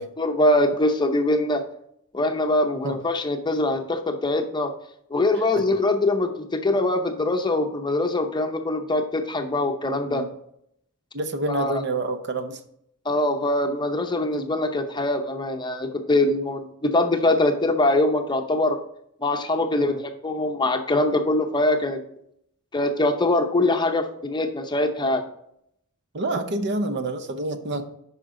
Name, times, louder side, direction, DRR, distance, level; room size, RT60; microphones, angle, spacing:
voice 1, 0.2-1.6 2.1-4.7 5.1-10.3 11.5-11.8 13.0-18.8 19.2-22.0 22.7-25.2, left 2 dB, 20° left, 6 dB, 0.7 m, -23 dB
voice 2, 11.1-12.6 19.8-20.0 26.1-27.9, right 2 dB, 55° right, 9 dB, 0.8 m, -28 dB
9.1 x 5.7 x 3.8 m, 0.73 s
head